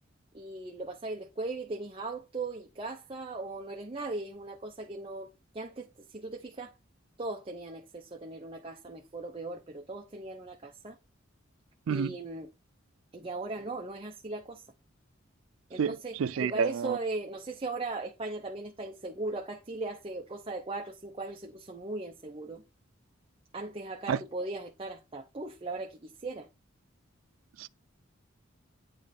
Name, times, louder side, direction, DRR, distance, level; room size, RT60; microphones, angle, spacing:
voice 1, 0.3-5.3 5.5-6.7 7.2-11.0 11.9-12.5 13.1-14.6 15.7-22.6 23.5-26.5, right 2 dB, 25° right, 0.6 m, -38 dB
voice 2, 15.8-17.0 24.1-24.2 27.6-27.7, right 6 dB, 85° right, 0.4 m, -29 dB
9.0 x 3.2 x 4.1 m
head